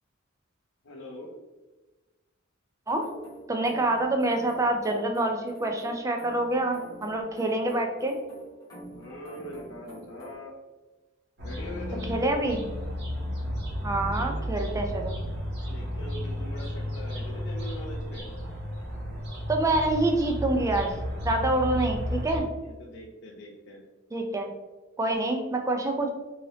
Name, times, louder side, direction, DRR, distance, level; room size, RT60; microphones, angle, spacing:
voice 1, 0.8-1.3 8.9-10.5 11.4-12.1 15.7-18.3 21.7-22.3 22.6-23.8, equal, 60° left, -3 dB, 0.5 m, -42 dB
sound 1, 2.9-10.3, equal, 20° left, 1.1 m, -46 dB
voice 2, 3.5-8.2 12.1-12.6 13.8-15.1 19.5-22.5 24.1-24.5 25.0-26.1, right 2 dB, 15° right, 3 dB, 0.4 m, -26 dB
sound 2, 11.4-22.4, equal, 55° right, 1.0 m, -33 dB
2.8 x 2.7 x 3.1 m, 1.2 s
head